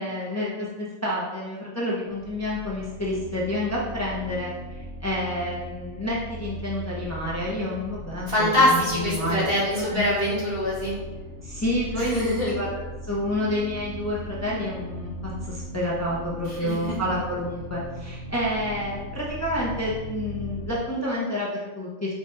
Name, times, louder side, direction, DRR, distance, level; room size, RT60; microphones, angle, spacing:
voice 1, 0.0-9.5 9.8-10.0 11.4-12.7 13.1-22.1, left 1 dB, 15° left, -6 dB, 1.2 m, -29 dB
sound 1, 2.1-20.8, equal, 75° left, 1.3 m, -38 dB
voice 2, 8.3-10.9 11.9-12.5 16.5-16.9, left 1 dB, 50° right, -7 dB, 2.7 m, -24 dB
6.1 x 5.4 x 4.3 m, 1.2 s
omnidirectional pair, 1.3 m